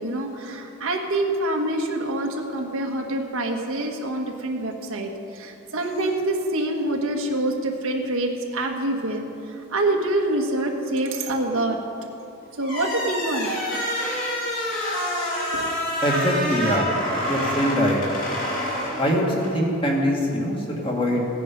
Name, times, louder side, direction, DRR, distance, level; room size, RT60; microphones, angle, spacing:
voice 1, 0.0-11.8 12.6-13.5 15.5-15.7, right 1 dB, 90° right, 2 dB, 1.5 m, -26 dB
sound 1, 12.6-19.6, equal, 40° left, 2.8 m, -27 dB
voice 2, 16.0-16.9 17.3-18.0 19.0-21.2, equal, 25° left, -2 dB, 2.0 m, -23 dB
16.5 x 9.4 x 5.2 m, 2.9 s
head